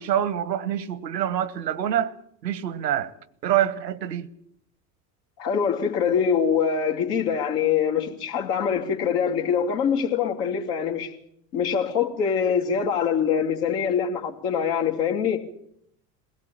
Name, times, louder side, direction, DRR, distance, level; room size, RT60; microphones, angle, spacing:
voice 1, 0.0-2.1 2.4-3.1 3.4-4.3, right 10 dB, 90° right, 1.2 m, -26 dB
voice 2, 5.4-11.1 11.5-15.5, left 7 dB, 70° left, 2.9 m, -24 dB
22.0 x 17.0 x 8.7 m
hypercardioid pair, 75°, 49 cm